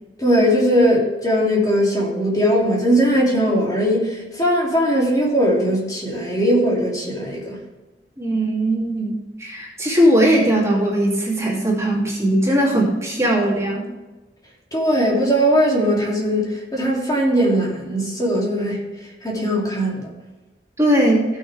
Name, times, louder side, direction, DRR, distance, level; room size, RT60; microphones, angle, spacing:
voice 1, 0.2-7.6 14.7-18.8 19.2-20.1, equal, 20° left, -3 dB, 2.8 m, -19 dB
voice 2, 8.2-13.8 20.8-21.2, right 1 dB, 15° right, -4 dB, 2.7 m, -19 dB
17.0 x 6.5 x 3.4 m, 1.2 s
head